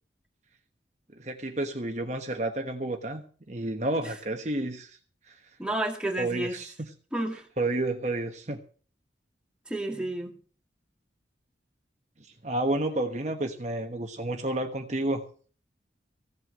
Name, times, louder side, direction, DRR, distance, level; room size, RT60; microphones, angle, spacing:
voice 1, 1.2-5.0 5.3-5.4 6.2-6.9 7.6-8.6 12.4-15.3, right 2 dB, 40° right, 1.3 m, -30 dB
voice 2, 5.6-6.5 7.1-7.5 9.7-10.3, right 1 dB, 5° right, 2.2 m, -31 dB
16.0 x 7.9 x 7.5 m
head